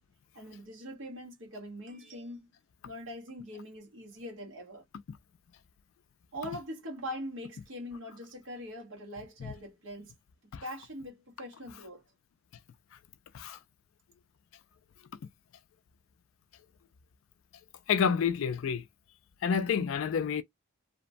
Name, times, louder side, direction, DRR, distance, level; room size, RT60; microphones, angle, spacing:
voice 1, 0.3-2.5 2.8-4.8 6.3-10.1 10.6-12.0, equal, 60° right, 0.9 m, -42 dB
voice 2, 17.9-18.8 19.4-20.4, left 7 dB, 70° left, 0.3 m, -29 dB
2.9 x 2.2 x 2.5 m
head